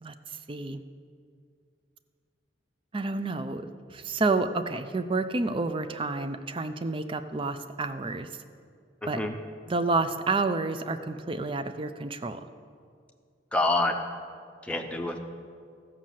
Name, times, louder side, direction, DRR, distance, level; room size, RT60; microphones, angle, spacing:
voice 1, 0.0-0.8 2.9-8.3 9.1-9.2 9.7-12.5, right 3 dB, 25° right, 10 dB, 0.4 m, -29 dB
voice 2, 9.0-9.3 13.5-14.0 14.6-15.2, left 2 dB, 5° left, 3 dB, 0.7 m, -27 dB
14.0 x 6.3 x 7.5 m, 2.2 s
head